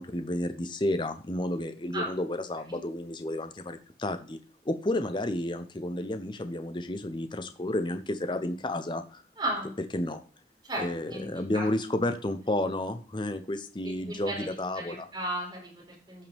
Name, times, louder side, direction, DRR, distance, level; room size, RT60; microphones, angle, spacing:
voice 1, 0.0-4.4 4.7-9.2 9.9-10.2 10.8-15.1, left 1 dB, 25° left, 9 dB, 0.7 m, -31 dB
voice 2, 9.4-9.7 10.6-11.7 13.8-16.3, right 1 dB, 25° right, -4 dB, 4.6 m, -35 dB
14.5 x 5.6 x 3.5 m, 0.41 s
head